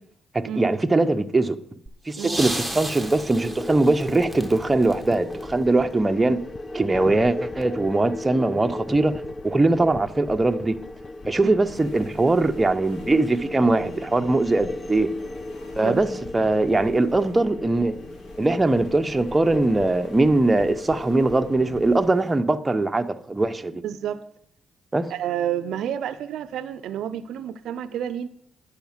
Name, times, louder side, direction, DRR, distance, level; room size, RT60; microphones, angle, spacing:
voice 1, 0.3-1.6 2.1-6.4 6.7-10.8 11.3-15.1 15.7-18.0 18.4-23.8 24.9-25.1, right 2 dB, 15° right, 0.7 m, -21 dB
sound 1, 1.9-6.0 7.2-7.3, right 1 dB, 5° left, 1.4 m, -34 dB
sound 2, 3.0-22.1, left 2 dB, 30° left, 0.5 m, -36 dB
sound 3, 11.7-22.3, left 1 dB, 70° left, 2.8 m, -47 dB
voice 2, 23.8-24.2 25.1-28.3, right 10 dB, 80° right, 0.5 m, -29 dB
10.5 x 5.0 x 7.2 m
cardioid pair, 90°, 0 cm